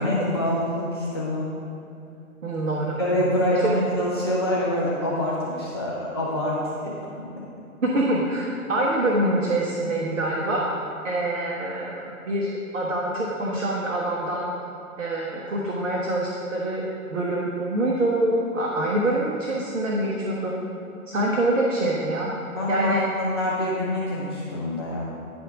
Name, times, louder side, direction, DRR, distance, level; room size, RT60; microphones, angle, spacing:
voice 1, 0.0-1.5 3.0-6.6 6.8-6.9 22.5-25.0, left 1 dB, 20° left, -8 dB, 0.4 m, -26 dB
voice 2, 2.4-3.0 3.5-3.7 7.8-10.7 11.0-11.9 12.2-14.5 15.0-16.8 17.1-20.5 21.1-22.3 22.7-23.0, right 1 dB, 60° right, -3 dB, 1.1 m, -25 dB
10.0 x 3.5 x 5.1 m, 2.7 s
figure-of-eight pair, 125°, 43 cm